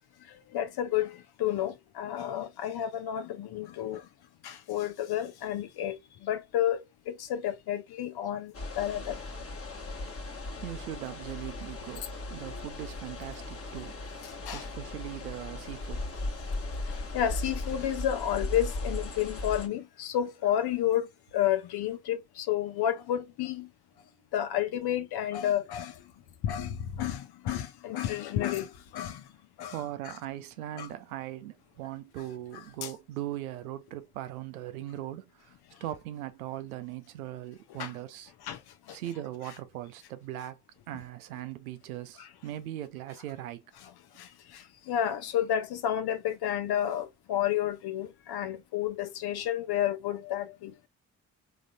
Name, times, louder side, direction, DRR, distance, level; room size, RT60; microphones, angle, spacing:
voice 1, 0.3-4.1 4.4-9.2 12.5-12.6 14.5-14.7 16.4-16.5 16.9-23.7 24.3-26.0 26.4-29.2 29.6-29.8 30.8-30.9 32.8-32.9 37.8-37.9 38.4-38.6 38.9-39.0 42.2-42.3 44.2-50.9, left 11 dB, 60° left, 0.8 m, -31 dB
sound 1, 8.5-19.7, left 2 dB, 35° left, 1.3 m, -37 dB
voice 2, 10.0-16.1 29.6-38.3 38.9-40.6 40.9-43.6, right 13 dB, 90° right, 0.5 m, -40 dB
3.7 x 3.1 x 2.2 m
hypercardioid pair, 40°, 42 cm